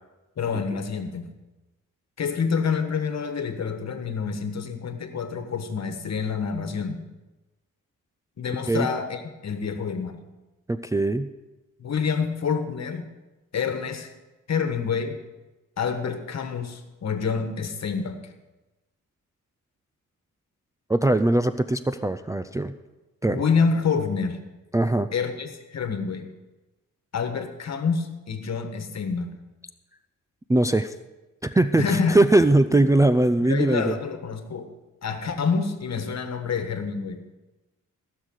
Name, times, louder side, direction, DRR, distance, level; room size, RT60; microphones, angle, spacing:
voice 1, 0.4-1.3 2.2-7.0 8.4-10.2 11.8-13.1 13.5-14.1 14.5-15.2 15.8-18.2 23.2-24.4 25.1-26.3 27.1-29.3 31.8-32.2 32.7-32.8 33.4-34.7 35.0-37.3, left 5 dB, 55° left, 7 dB, 1.5 m, -27 dB
voice 2, 10.7-11.3 20.9-22.7 23.2-23.4 24.7-25.1 30.5-30.9 31.4-34.0, right 2 dB, 10° right, 9 dB, 0.4 m, -21 dB
16.0 x 6.7 x 6.3 m, 1.1 s
cardioid pair, 95°, 32 cm